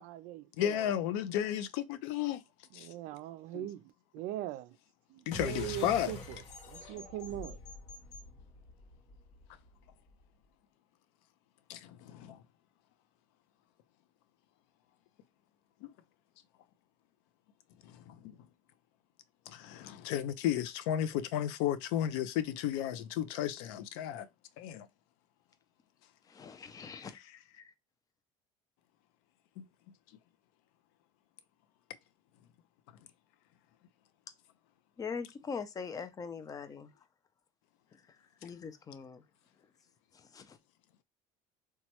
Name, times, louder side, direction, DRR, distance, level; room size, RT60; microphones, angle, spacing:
voice 1, 0.0-0.9 2.8-4.8 5.1-7.6, right 14 dB, 75° right, 0.4 m, -41 dB
voice 2, 0.6-2.4 2.7-2.9 3.5-3.7 5.3-6.1 11.7-12.4 15.8-15.9 17.8-18.4 19.5-24.3 24.6-24.9 29.6-29.7, left 11 dB, 85° left, 0.4 m, -33 dB
sound 1, 5.3-10.2, left 3 dB, 60° left, 0.8 m, -46 dB
voice 3, 26.3-27.2 27.5-27.7 35.0-36.9 38.4-39.2 40.1-40.6, left 5 dB, 25° left, 0.4 m, -42 dB
3.0 x 2.2 x 2.9 m
cardioid pair, 115°, 13 cm